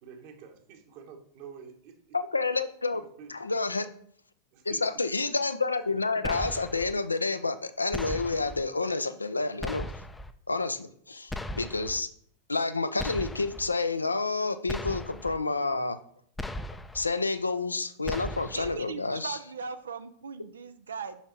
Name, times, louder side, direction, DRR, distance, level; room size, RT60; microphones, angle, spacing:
voice 1, 0.0-2.2 2.9-3.4 4.5-4.8 5.9-6.3, right 7 dB, 50° right, 5 dB, 1.2 m, -48 dB
voice 2, 2.1-3.0 3.3-3.9 4.7-9.9 10.5-12.1 12.5-16.0 16.9-19.4, left 3 dB, 80° left, 11 dB, 0.4 m, -29 dB
sound 1, 6.2-6.9 7.9-8.6 9.6-10.3 11.3-12.0 13.0-13.7 14.7-15.4 16.4-17.1 18.1-18.8, left 1 dB, 5° left, 0.4 m, -37 dB
voice 3, 18.5-21.2, right 5 dB, 70° right, 11 dB, 0.4 m, -39 dB
5.8 x 5.8 x 4.0 m, 0.64 s
figure-of-eight pair, 90°, 0 cm